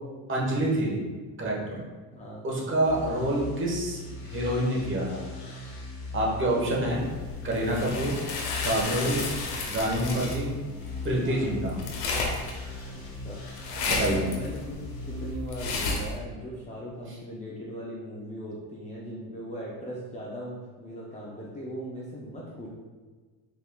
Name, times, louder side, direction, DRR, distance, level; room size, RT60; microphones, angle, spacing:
voice 1, 0.3-1.0 1.4-1.8 2.4-5.2 6.1-7.0 7.4-8.2 8.6-9.2 9.7-10.5 11.0-11.8 13.8-14.3, right 1 dB, 25° right, -3 dB, 1.1 m, -27 dB
voice 2, 2.1-2.4 3.0-3.3 6.4-6.8 10.0-10.3 11.2-11.5 12.9-13.4 13.9-22.7, equal, 15° left, -5 dB, 0.4 m, -39 dB
sound 1, 2.8-15.3, left 3 dB, 50° left, 1.2 m, -39 dB
sound 2, 7.0-16.2, left 3 dB, 85° left, 1.0 m, -33 dB
4.2 x 3.6 x 2.3 m, 1.4 s
supercardioid pair, 110°, 47 cm